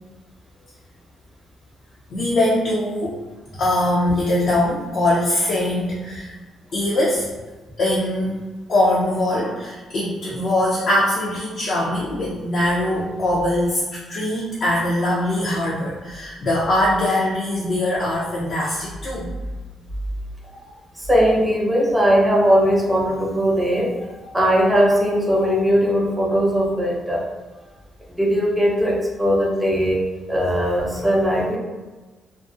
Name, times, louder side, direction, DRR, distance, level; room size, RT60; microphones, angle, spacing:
voice 1, 2.1-3.2 3.6-6.3 6.7-7.3 7.8-19.3, left 1 dB, 60° left, -7 dB, 0.6 m, -22 dB
voice 2, 21.0-23.9 24.3-27.3 28.1-30.0 30.3-31.6, equal, 10° right, -3 dB, 0.5 m, -19 dB
2.5 x 2.0 x 2.5 m, 1.3 s
cardioid pair, 90°, 0 cm